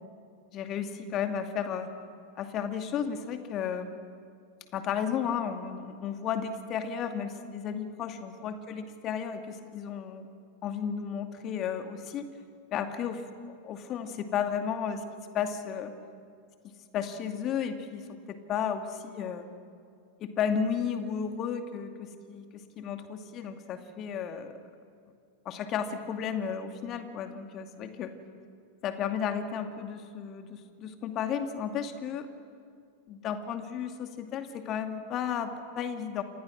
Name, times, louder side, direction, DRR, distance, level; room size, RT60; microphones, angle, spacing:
voice 1, 0.5-1.9 2.4-3.9 4.7-10.3 10.6-12.3 12.7-13.2 13.6-15.0 15.3-15.9 16.9-19.5 20.2-22.5 22.8-24.6 25.4-28.1 28.8-32.3 33.1-36.2, left 7 dB, 35° left, 6 dB, 2.4 m, -33 dB
28.5 x 27.5 x 6.3 m, 2.3 s
figure-of-eight pair, 90°, 0 cm